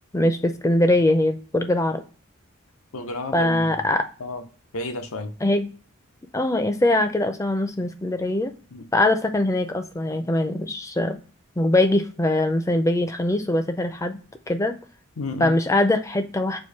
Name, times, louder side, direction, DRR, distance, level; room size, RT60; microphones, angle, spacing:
voice 1, 0.1-2.0 3.3-4.1 5.4-5.7 6.3-8.5 8.9-11.2 11.6-14.2 14.5-14.8 15.4-16.6, left 1 dB, 15° left, 0.4 m, -22 dB
voice 2, 2.9-3.8 4.2-4.5 4.7-5.4 8.7-8.9 15.2-15.5, left 2 dB, 85° left, 0.7 m, -32 dB
4.5 x 2.6 x 4.5 m
head